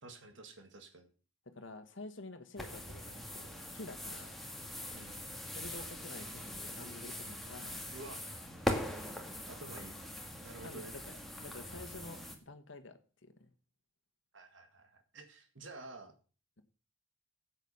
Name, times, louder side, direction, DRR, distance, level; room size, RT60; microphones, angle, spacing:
voice 1, 0.0-1.1 4.9-5.2 7.9-8.2 9.5-10.0 10.4-11.0 14.3-16.1, right 2 dB, 65° right, 6 dB, 1.9 m, -50 dB
voice 2, 1.4-4.3 5.5-7.8 10.6-13.5, left 2 dB, 65° left, 9 dB, 1.5 m, -50 dB
sound 1, 2.6-12.4, left 1 dB, ahead, 1.8 m, -42 dB
12.5 x 8.3 x 5.5 m, 0.38 s
head